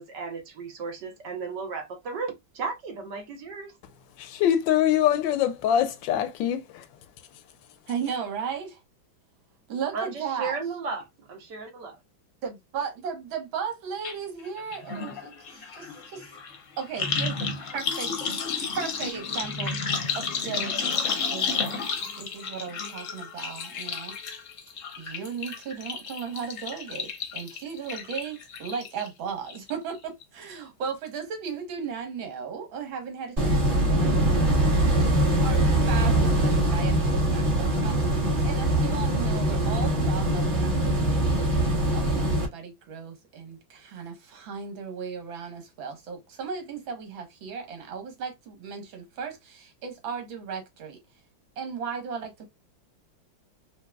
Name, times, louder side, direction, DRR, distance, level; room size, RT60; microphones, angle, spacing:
voice 1, 0.0-3.8 9.9-12.0, right 4 dB, 65° right, 1.5 m, -35 dB
voice 2, 4.2-6.9, left 10 dB, 75° left, 1.3 m, -24 dB
voice 3, 7.9-8.8 9.7-10.6 12.4-15.3 15.7-16.3 16.8-18.2 18.6-21.8 22.2-24.2 25.0-34.7 35.0-51.0 51.6-52.4, right 6 dB, 80° right, 1.9 m, -36 dB
sound 1, 14.0-14.2 14.4-29.1 29.5-30.0 30.2-30.3, left 5 dB, 55° left, 0.9 m, -32 dB
sound 2, 33.4-42.5, right 1 dB, 30° right, 1.5 m, -23 dB
4.6 x 2.5 x 2.2 m
omnidirectional pair, 2.1 m